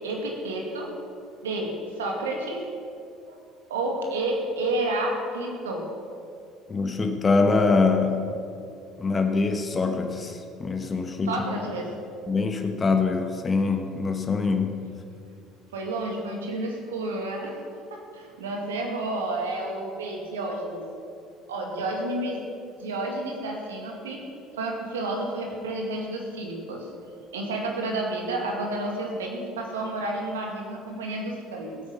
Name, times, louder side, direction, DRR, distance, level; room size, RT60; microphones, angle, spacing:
voice 1, 0.0-0.9 1.4-1.7 2.0-2.6 3.3-3.4 3.7-5.8 11.3-11.9 15.7-17.6 17.9-20.8 21.5-22.4 22.8-24.2 24.6-26.9 27.3-31.8, right 2 dB, 80° right, 1 dB, 2.0 m, -30 dB
voice 2, 6.7-8.2 9.0-11.4 12.3-14.8, left 4 dB, 30° left, 5 dB, 1.3 m, -24 dB
16.0 x 8.6 x 5.6 m, 2.5 s
hypercardioid pair, 60°, 0 cm